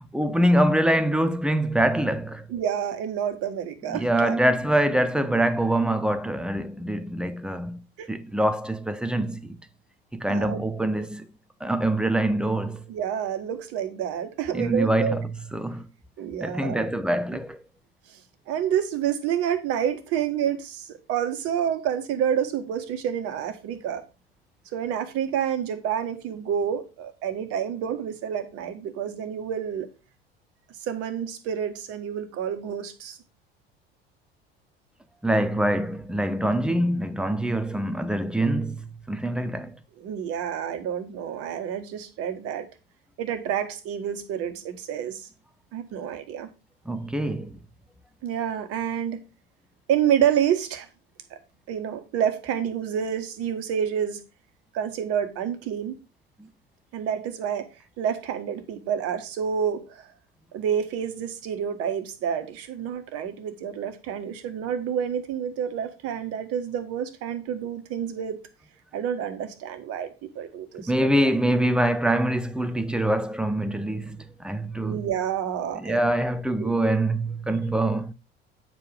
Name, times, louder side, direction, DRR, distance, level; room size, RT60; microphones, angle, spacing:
voice 1, 0.1-2.4 3.9-7.8 8.1-9.6 10.1-11.3 11.6-12.8 14.5-15.9 16.4-17.6 35.2-39.7 46.9-47.6 56.4-56.5 70.9-75.0 75.8-78.1, right 1 dB, 5° right, 0.8 m, -24 dB
voice 2, 2.5-4.4 8.0-8.1 10.3-10.6 12.9-15.2 16.2-16.9 18.5-24.0 24.7-29.9 30.9-33.2 40.0-42.7 43.2-45.2 45.7-46.5 48.2-49.2 49.9-50.9 51.3-51.4 51.7-54.2 54.7-56.0 56.9-57.7 58.0-60.1 60.5-68.4 68.9-71.1 74.8-76.1 76.6-76.7, right 9 dB, 50° right, 1.6 m, -28 dB
9.1 x 4.9 x 4.9 m
figure-of-eight pair, 70°, 30 cm